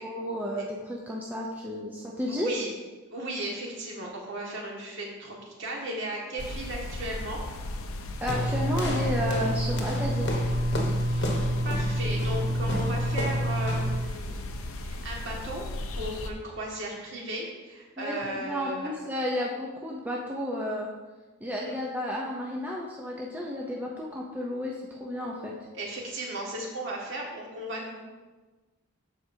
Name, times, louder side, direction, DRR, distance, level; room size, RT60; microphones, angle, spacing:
voice 1, 0.0-2.5 8.2-10.4 18.0-20.9 21.4-25.5, left 1 dB, 10° right, -3 dB, 0.6 m, -32 dB
voice 2, 3.1-7.4 11.1-14.4 14.7-15.6 16.0-18.9 21.6-21.8 25.7-28.0, right 1 dB, 55° right, -2 dB, 1.8 m, -36 dB
sound 1, 6.4-16.3, left 1 dB, 70° left, 0.7 m, -36 dB
sound 2, 8.3-14.1, equal, 50° left, 1.1 m, -28 dB
13.0 x 4.9 x 2.8 m, 1.2 s
head